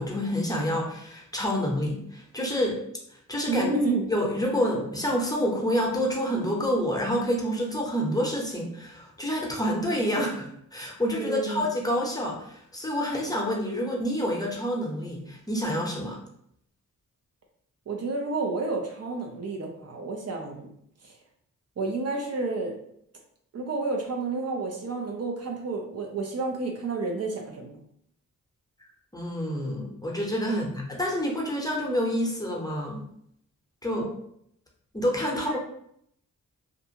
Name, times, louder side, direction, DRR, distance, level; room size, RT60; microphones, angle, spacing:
voice 1, 0.0-2.8 3.1-3.7 4.1-16.2 29.1-33.0 33.8-34.1 34.9-35.6, equal, 10° left, -1 dB, 0.7 m, -28 dB
voice 2, 3.5-4.1 11.1-11.6 13.8-13.9 17.9-20.7 21.0-21.1 21.8-22.7 23.5-27.8 30.5-30.6 33.9-34.1 35.3-35.6, right 3 dB, 50° right, 1 dB, 0.5 m, -30 dB
2.5 x 2.3 x 2.8 m, 0.71 s
cardioid pair, 60°, 33 cm